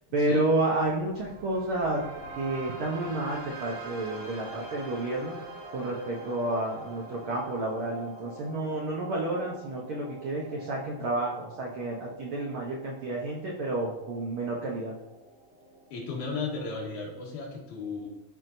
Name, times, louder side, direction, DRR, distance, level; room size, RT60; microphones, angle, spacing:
voice 1, 0.1-2.0 2.3-5.4 5.7-14.9, right 2 dB, 80° right, -2 dB, 1.2 m, -30 dB
sound 1, 0.8-16.8, right 2 dB, 35° right, 2.6 m, -45 dB
voice 2, 15.9-18.1, left 4 dB, 75° left, -2 dB, 2.9 m, -35 dB
13.0 x 4.6 x 2.7 m, 1.0 s
omnidirectional pair, 3.7 m